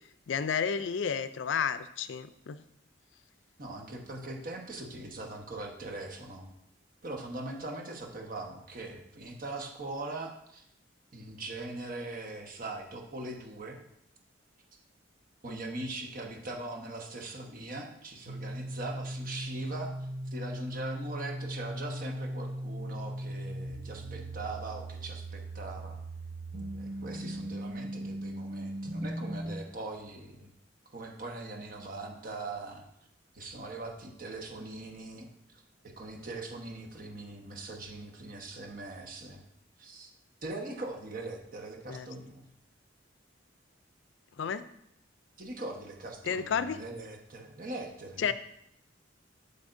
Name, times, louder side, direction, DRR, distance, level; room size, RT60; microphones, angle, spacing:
voice 1, 0.3-2.6 27.1-27.3 41.9-42.1 44.4-44.6 46.2-46.8 48.2-48.3, left 7 dB, 70° left, 13 dB, 0.4 m, -31 dB
voice 2, 3.6-6.5 7.0-10.6 11.1-13.8 15.4-26.0 26.8-30.5 30.9-32.8 33.3-35.3 35.8-39.4 39.8-40.1 40.4-42.5 45.4-48.3, right 2 dB, 45° right, 2 dB, 1.2 m, -41 dB
sound 1, 18.3-29.6, right 1 dB, 85° right, 2.3 m, -38 dB
8.4 x 7.0 x 2.6 m, 0.75 s
head